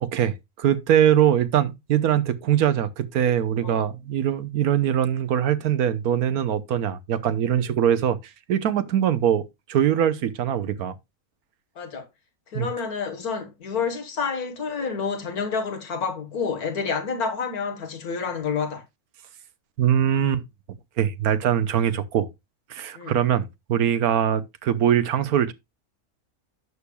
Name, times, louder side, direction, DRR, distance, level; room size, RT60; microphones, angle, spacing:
voice 1, 0.0-8.2 8.5-10.9 12.5-12.7 19.8-20.4 21.0-22.3 22.7-25.5, right 9 dB, 80° right, 1.3 m, -22 dB
voice 2, 11.8-12.1 12.5-18.8 22.9-23.2, left 5 dB, 80° left, 1.9 m, -29 dB
11.5 x 8.5 x 2.3 m
omnidirectional pair, 1.6 m